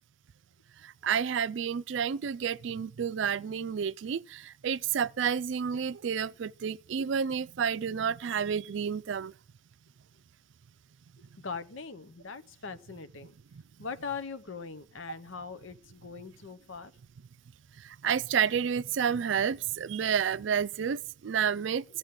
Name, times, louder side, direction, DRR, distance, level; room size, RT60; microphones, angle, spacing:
voice 1, 0.8-9.3 13.5-13.6 18.0-21.8, right 7 dB, 70° right, 0.4 m, -30 dB
voice 2, 11.2-13.3 13.8-16.9, left 5 dB, 85° left, 0.8 m, -41 dB
15.0 x 8.1 x 3.7 m
head